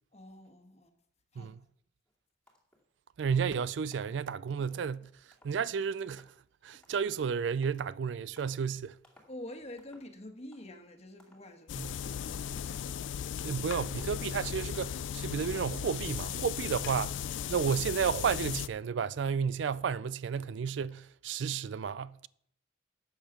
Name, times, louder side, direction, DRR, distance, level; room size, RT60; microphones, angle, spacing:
voice 1, 0.1-0.9 1.3-1.5 9.3-13.1, left 1 dB, 35° left, 1.4 m, -48 dB
sound 1, 2.1-2.2 2.5-2.9 3.2-3.6 3.9-4.2 4.6-4.9 5.3-5.6 6.0-6.4 6.8-7.2 7.6-7.9 8.4-8.7 9.0-9.4 9.8-10.2 10.5-10.9 11.2-11.5 11.9-12.2 12.6-13.0 13.4-13.7 14.0-14.4 14.7-15.1 15.4-15.8 16.2-16.3, left 1 dB, 5° left, 2.3 m, -63 dB
voice 2, 3.2-5.1 5.4-6.3 6.6-9.0 11.7-11.9 13.4-22.3, right 6 dB, 75° right, 0.4 m, -32 dB
sound 2, 11.7-18.7, left 9 dB, 85° left, 0.4 m, -37 dB
11.5 x 7.3 x 6.0 m
head